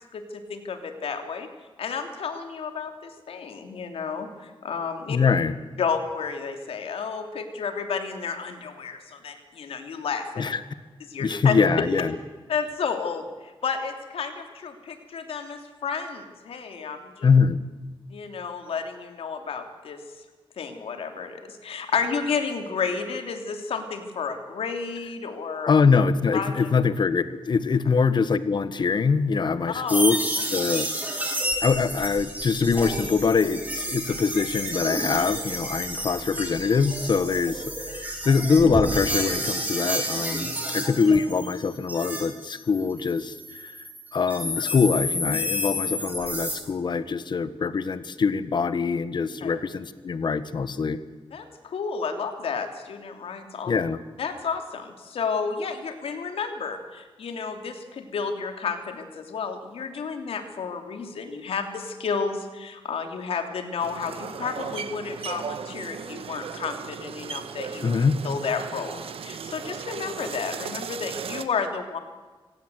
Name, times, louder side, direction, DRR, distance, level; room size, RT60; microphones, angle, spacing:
voice 1, 0.1-1.5 1.8-5.2 5.8-10.4 11.0-11.6 12.5-17.3 18.1-20.0 20.6-25.7 26.3-26.7 29.7-30.1 30.4-30.5 40.5-40.7 49.4-49.5 51.3-53.7 54.2-67.8 68.2-72.0, left 5 dB, 85° left, 6 dB, 2.9 m, -31 dB
voice 2, 5.1-5.5 10.4-10.6 11.2-12.1 17.2-17.6 25.7-30.2 30.5-30.9 31.6-43.8 44.1-51.0 53.7-54.0 67.8-68.2, left 5 dB, 50° left, 13 dB, 1.3 m, -23 dB
sound 1, 29.9-42.2 42.6-46.6, equal, 15° right, 5.2 m, -30 dB
sound 2, 63.8-71.5, right 7 dB, 80° right, 1.4 m, -36 dB
25.5 x 17.0 x 8.0 m, 1.3 s
wide cardioid pair, 120°, 10 cm